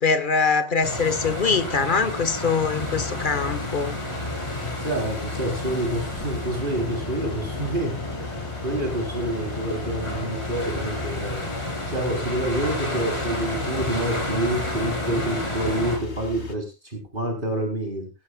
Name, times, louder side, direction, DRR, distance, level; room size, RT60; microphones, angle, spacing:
voice 1, 0.0-4.0, left 5 dB, 50° left, 11 dB, 1.6 m, -23 dB
sound 1, 0.8-16.0, left 1 dB, 25° left, 3.7 m, -31 dB
sound 2, 2.8-16.6, left 5 dB, 90° left, 2.1 m, -37 dB
voice 2, 4.8-11.5 11.9-18.1, right 1 dB, 50° right, 2 dB, 4.0 m, -28 dB
17.0 x 14.5 x 2.4 m, 0.29 s
omnidirectional pair, 1.1 m